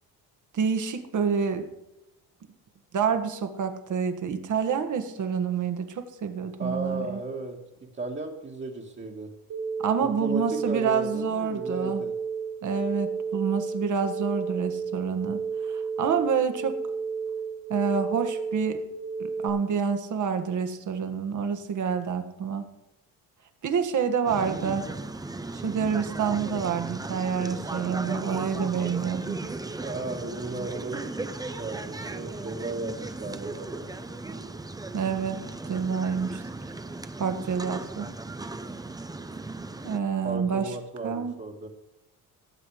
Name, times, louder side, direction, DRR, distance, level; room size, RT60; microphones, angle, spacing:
voice 1, 0.5-1.7 2.9-7.2 9.8-12.0 12.6-15.4 15.7-16.8 17.7-18.8 19.2-22.6 23.6-24.8 25.5-29.4 34.9-36.4 37.2-38.1 39.8-40.8 41.0-41.4, right 6 dB, 50° right, 7 dB, 1.7 m, -28 dB
voice 2, 6.6-9.3 10.0-12.1 29.8-33.9 40.2-41.7, right 3 dB, 30° right, -1 dB, 1.9 m, -35 dB
sound 1, 9.5-19.5, right 5 dB, 70° right, 4.6 m, -32 dB
sound 2, 24.3-40.0, right 2 dB, 10° right, 0.8 m, -36 dB
17.5 x 7.5 x 4.9 m, 0.93 s
cardioid pair, 105°, 37 cm